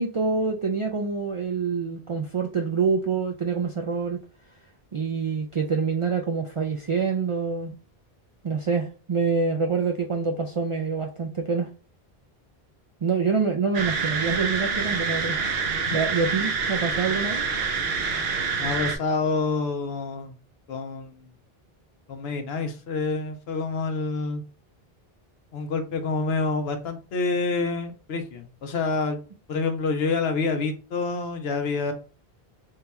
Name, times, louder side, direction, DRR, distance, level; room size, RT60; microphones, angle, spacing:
voice 1, 0.0-4.2 4.9-7.7 8.4-11.7 13.0-15.4 15.9-17.5, right 5 dB, 55° right, 1 dB, 0.3 m, -26 dB
sound 1, 13.7-19.0, right 5 dB, 75° right, 0.9 m, -27 dB
voice 2, 18.6-20.3 20.7-21.3 22.1-24.4 25.5-29.2 29.5-31.9, left 4 dB, 80° left, 7 dB, 0.9 m, -27 dB
3.7 x 2.3 x 4.1 m, 0.35 s
omnidirectional pair, 1.0 m